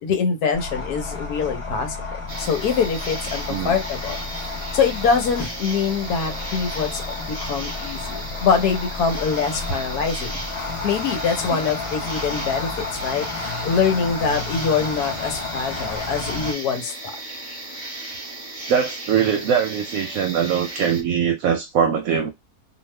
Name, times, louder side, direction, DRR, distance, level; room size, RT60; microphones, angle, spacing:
voice 1, 0.0-4.2 4.7-10.4 10.8-17.2, left 6 dB, 85° left, 1.3 m, -24 dB
sound 1, 0.5-16.5, left 3 dB, 35° left, 0.5 m, -31 dB
sound 2, 2.3-21.0, right 1 dB, 25° right, 0.9 m, -35 dB
voice 2, 18.7-22.3, right 7 dB, 70° right, 0.9 m, -22 dB
2.8 x 2.4 x 3.1 m
omnidirectional pair, 1.6 m